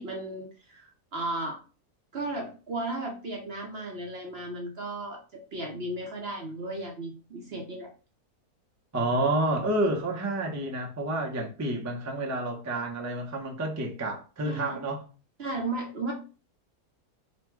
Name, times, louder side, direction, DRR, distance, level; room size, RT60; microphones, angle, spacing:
voice 1, 0.0-1.6 2.1-7.9 14.4-14.8 15.4-16.1, right 2 dB, 50° right, 0.8 m, -35 dB
voice 2, 8.9-15.0, right 1 dB, 20° right, 0.5 m, -29 dB
4.0 x 2.2 x 4.5 m
omnidirectional pair, 1.7 m